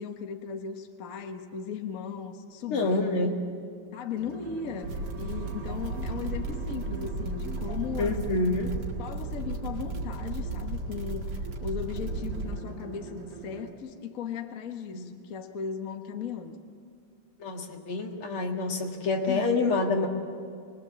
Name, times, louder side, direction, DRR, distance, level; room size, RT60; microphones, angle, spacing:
voice 1, 0.0-3.2 3.9-8.3 9.0-11.3 11.6-16.6 19.3-19.5, left 6 dB, 45° left, 5 dB, 1.4 m, -37 dB
voice 2, 2.7-3.3 8.0-8.8 14.9-15.1 17.4-20.1, left 3 dB, 80° left, 2 dB, 2.8 m, -27 dB
sound 1, 4.1-13.7, right 5 dB, 90° right, 3.1 m, -42 dB
sound 2, 4.8-12.6, right 2 dB, 70° right, 2.9 m, -34 dB
25.5 x 21.0 x 7.4 m, 2.2 s
omnidirectional pair, 2.4 m